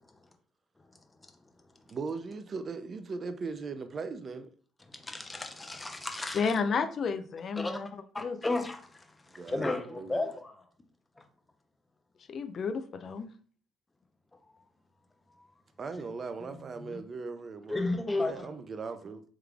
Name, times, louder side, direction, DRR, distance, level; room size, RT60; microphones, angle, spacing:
voice 1, 1.9-4.5 9.3-10.3 15.8-17.8 18.2-19.2, right 4 dB, 45° right, 0.5 m, -39 dB
voice 2, 4.9-6.5 7.6-7.8 8.1-10.6 16.0-16.1 16.5-17.0 17.7-18.5, left 2 dB, 20° left, 0.7 m, -34 dB
voice 3, 6.3-7.9 8.2-8.4 12.3-13.3, left 5 dB, 50° left, 0.4 m, -31 dB
3.6 x 3.2 x 2.3 m
hypercardioid pair, 60°, 0 cm